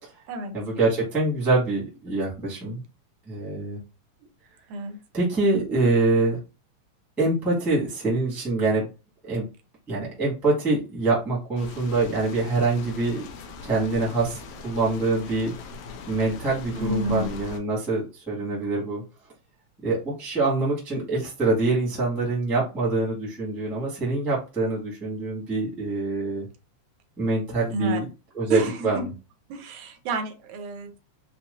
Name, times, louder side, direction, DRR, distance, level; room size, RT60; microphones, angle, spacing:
voice 1, 0.5-2.8 3.3-3.8 5.1-6.4 7.2-8.9 9.2-9.4 9.9-13.2 13.6-15.5 16.1-19.0 19.8-26.5 27.2-28.0 28.3-29.1, right 3 dB, ahead, 0.5 m, -25 dB
voice 2, 4.7-5.0 16.7-17.3 27.7-28.0 28.5-29.1 29.5-31.0, right 2 dB, 80° right, 1.9 m, -30 dB
sound 1, 11.6-17.6, left 4 dB, 80° left, 1.9 m, -40 dB
5.7 x 2.1 x 2.5 m
omnidirectional pair, 3.4 m